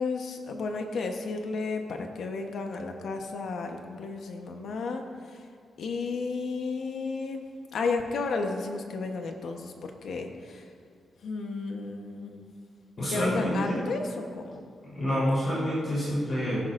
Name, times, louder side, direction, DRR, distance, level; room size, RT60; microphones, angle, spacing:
voice 1, 0.0-5.5 5.8-7.4 7.7-10.7 11.2-12.5 13.1-14.7, left 4 dB, 65° left, 4 dB, 1.0 m, -33 dB
voice 2, 13.0-13.8 14.8-16.6, equal, 40° left, -9 dB, 3.8 m, -27 dB
17.5 x 14.5 x 2.6 m, 2.2 s
wide cardioid pair, 170°, 0 cm